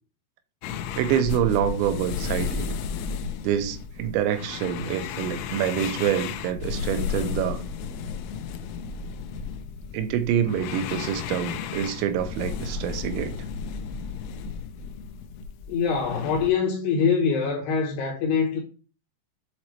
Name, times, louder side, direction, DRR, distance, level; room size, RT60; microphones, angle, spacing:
sound 1, 0.6-16.5, left 6 dB, 90° left, 3.1 m, -33 dB
voice 1, 1.0-2.7 3.4-7.6 9.9-13.4, right 10 dB, 85° right, 3.0 m, -26 dB
voice 2, 15.7-18.6, left 6 dB, 75° left, 2.7 m, -24 dB
7.6 x 4.2 x 3.1 m
omnidirectional pair, 5.3 m